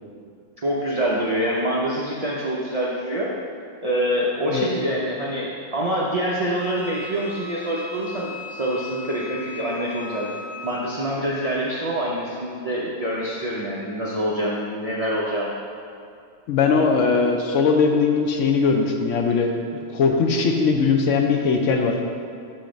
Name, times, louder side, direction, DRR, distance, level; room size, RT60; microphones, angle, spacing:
voice 1, 0.6-3.3 3.8-10.3 10.6-15.5, equal, 70° right, -6 dB, 0.3 m, -25 dB
Wind instrument woodwind instrument, 6.6-10.8, left 3 dB, 15° left, 0.7 m, -38 dB
voice 2, 16.5-19.5 19.9-22.0, left 5 dB, 70° left, 3 dB, 0.8 m, -20 dB
5.8 x 3.8 x 5.0 m, 2.5 s
omnidirectional pair, 1.5 m